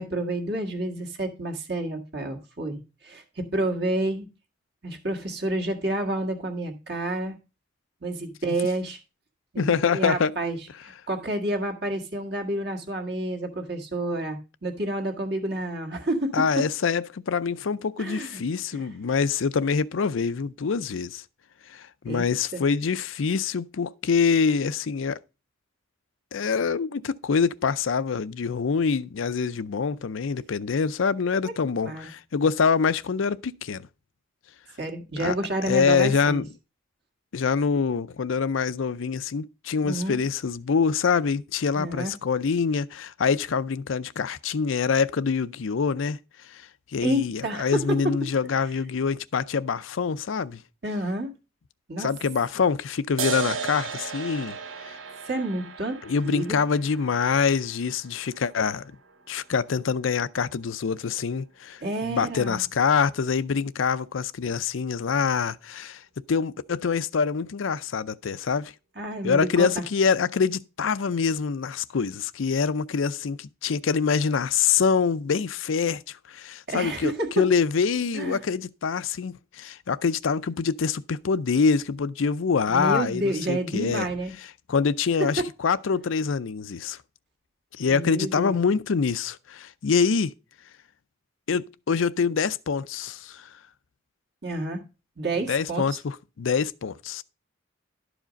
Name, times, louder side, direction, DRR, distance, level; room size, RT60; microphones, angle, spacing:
voice 1, 0.0-2.8 3.0-4.3 4.8-7.4 8.0-9.0 9.5-10.6 10.8-16.3 18.0-18.4 18.7-19.0 22.0-22.2 22.5-22.6 31.4-31.5 31.8-32.1 34.8-36.4 39.8-40.2 41.7-42.1 47.0-48.1 50.8-51.3 51.9-52.1 55.3-56.6 61.8-62.6 69.0-69.8 76.7-77.4 78.1-78.4 82.7-84.3 87.9-88.5 94.4-94.8 95.2-96.0, right 1 dB, 50° right, 1.8 m, -29 dB
voice 2, 9.6-10.3 16.3-21.2 21.7-25.2 26.3-33.9 35.2-35.4 35.6-36.5 37.3-46.2 46.5-46.6 46.9-50.6 52.0-54.6 54.9-55.0 56.0-58.9 59.3-66.0 66.3-68.7 69.2-84.1 84.7-87.0 87.8-90.3 91.5-93.5 95.5-97.2, left 5 dB, 80° left, 0.5 m, -25 dB
sound 1, 53.2-60.2, right 5 dB, 90° right, 1.1 m, -36 dB
12.0 x 5.0 x 5.1 m
head